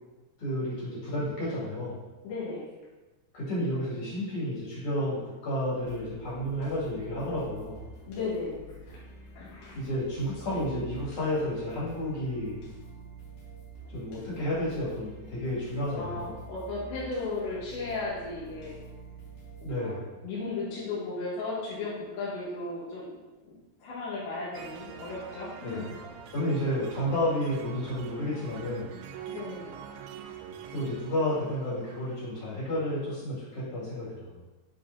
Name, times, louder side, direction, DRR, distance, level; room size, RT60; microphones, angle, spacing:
voice 1, 0.4-2.0 3.3-7.8 9.7-12.6 13.9-16.3 19.6-20.1 25.6-25.9 26.3-28.9 30.7-34.4, left 1 dB, 40° left, -8 dB, 2.7 m, -31 dB
voice 2, 2.2-2.7 8.1-9.0 9.4-9.9 16.0-18.8 19.6-19.9 20.2-23.1 23.4-25.9 29.3-29.7, left 3 dB, 80° left, -7 dB, 3.5 m, -35 dB
sound 1, 5.8-19.7, right 2 dB, 55° left, 2.6 m, -47 dB
sound 2, 24.5-33.1, right 8 dB, 80° right, 2.3 m, -45 dB
10.0 x 4.1 x 2.8 m, 1.2 s
omnidirectional pair, 5.1 m